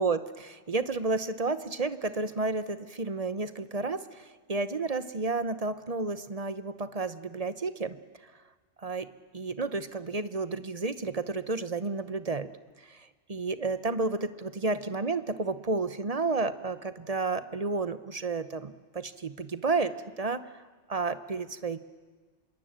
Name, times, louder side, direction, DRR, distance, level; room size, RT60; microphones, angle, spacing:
voice 1, 0.0-8.0 8.8-9.1 9.3-12.5 12.8-20.4 20.9-21.8, right 3 dB, 35° right, 13 dB, 1.0 m, -31 dB
26.5 x 22.5 x 8.9 m, 1.4 s
omnidirectional pair, 1.3 m